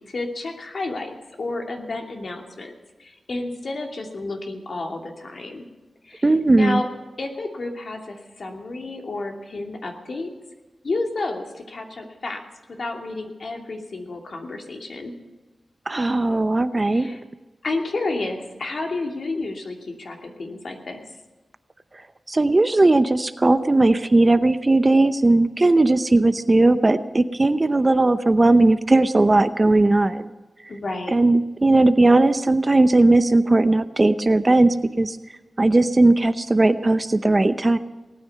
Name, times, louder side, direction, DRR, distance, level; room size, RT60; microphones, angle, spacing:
voice 1, 0.1-2.7 3.0-5.6 6.0-6.9 7.2-10.3 10.8-12.5 12.8-15.1 16.9-17.2 17.6-21.0 30.7-31.1, left 2 dB, 60° left, 2 dB, 2.7 m, -31 dB
voice 2, 6.2-6.8 15.9-17.1 22.3-30.3 31.1-35.2 35.6-37.8, right 2 dB, 30° right, 12 dB, 0.8 m, -18 dB
19.0 x 9.5 x 6.8 m, 1.2 s
wide cardioid pair, 75°, 0 cm